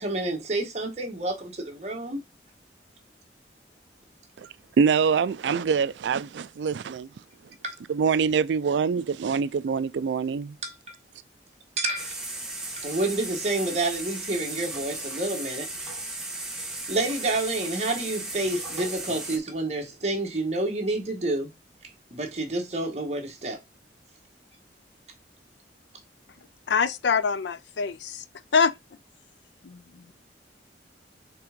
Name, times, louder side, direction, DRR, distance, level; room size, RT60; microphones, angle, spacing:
voice 1, 0.0-2.2 7.6-7.7 10.6-10.9 11.8-12.1 12.8-15.7 16.9-21.5 22.1-23.6, right 2 dB, 40° right, 1.7 m, -29 dB
voice 2, 4.8-7.1 7.9-10.6, right 6 dB, 80° right, 0.4 m, -24 dB
sound 1, 11.9-19.4, right 2 dB, 5° right, 1.6 m, -36 dB
voice 3, 26.7-28.2 28.5-28.7 29.6-30.1, left 5 dB, 80° left, 0.5 m, -25 dB
5.8 x 3.7 x 5.1 m
head